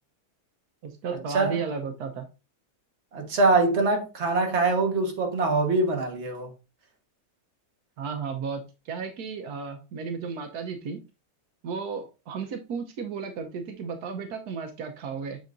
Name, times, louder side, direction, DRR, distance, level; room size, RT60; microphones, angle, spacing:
voice 1, 0.8-2.2 8.0-11.0 11.6-15.4, right 5 dB, 80° right, 1.4 m, -34 dB
voice 2, 3.1-6.5, right 3 dB, 45° right, 1.6 m, -23 dB
8.3 x 5.5 x 2.6 m
omnidirectional pair, 1.6 m